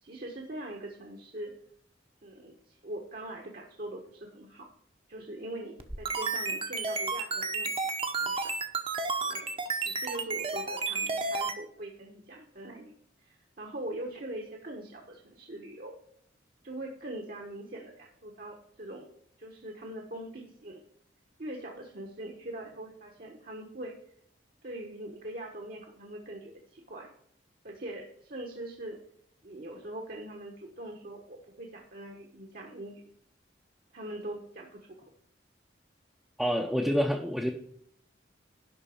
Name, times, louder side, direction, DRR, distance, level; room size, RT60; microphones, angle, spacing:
voice 1, 0.0-1.5 2.2-4.7 5.1-7.7 8.2-8.5 9.2-9.5 9.8-15.9 16.6-19.1 19.4-20.8 21.4-24.0 24.6-27.1 27.6-29.0 29.4-33.0 33.9-35.1, right 1 dB, 50° right, 0 dB, 1.2 m, -42 dB
sound 1, 5.8-11.6, right 3 dB, 30° right, 0.9 m, -31 dB
voice 2, 36.4-37.5, equal, ahead, -1 dB, 0.7 m, -27 dB
11.0 x 4.0 x 7.1 m, 0.67 s
head